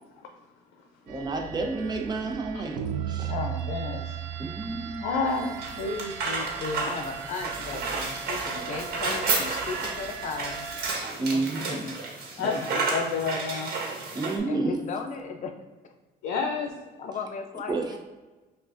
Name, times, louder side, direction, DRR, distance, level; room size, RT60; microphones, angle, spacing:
voice 1, 1.0-3.3 4.4-5.1 11.2-11.9 12.4-12.5 14.1-14.8 17.7-17.9, right 3 dB, 25° right, 2 dB, 0.8 m, -30 dB
sound 1, 1.1-10.9, right 9 dB, 85° right, 0.4 m, -37 dB
voice 2, 3.3-4.2 5.0-6.9 12.4-13.7 16.2-16.7, left 4 dB, 90° left, 3 dB, 0.5 m, -30 dB
sound 2, 5.3-14.4, right 3 dB, 65° right, 1.3 m, -32 dB
voice 3, 6.9-10.7 11.3-12.0 12.4-12.8 14.5-15.5 17.0-18.0, left 5 dB, 45° left, 5 dB, 0.6 m, -36 dB
5.9 x 2.4 x 2.5 m, 1.2 s
cardioid pair, 110°, 17 cm